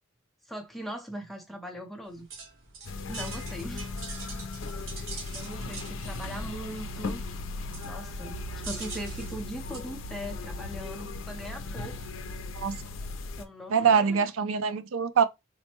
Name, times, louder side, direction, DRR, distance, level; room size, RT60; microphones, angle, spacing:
voice 1, 0.5-2.3 3.1-3.9 5.3-7.2 7.8-12.0 13.4-14.3, equal, ahead, 0.7 m, -40 dB
sound 1, 2.0-9.8, right 4 dB, 65° right, 1.4 m, -44 dB
sound 2, 2.8-13.4, left 2 dB, 70° left, 0.5 m, -37 dB
voice 2, 13.7-15.2, right 6 dB, 85° right, 0.4 m, -24 dB
4.1 x 2.2 x 2.9 m
head